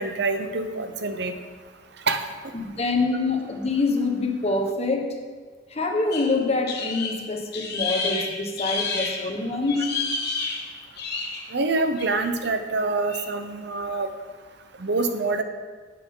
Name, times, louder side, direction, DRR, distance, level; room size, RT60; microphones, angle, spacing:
voice 1, 0.0-1.4 2.1-2.3 11.5-14.1 14.8-15.4, right 3 dB, 65° right, 8 dB, 0.8 m, -26 dB
voice 2, 2.5-5.1 5.7-9.9, left 3 dB, 35° left, 3 dB, 1.2 m, -25 dB
sound 1, 6.1-9.3 9.6-11.5 12.0-12.3 13.0-13.3, left 4 dB, 60° left, 1.5 m, -30 dB
11.0 x 8.6 x 3.8 m, 1.5 s
head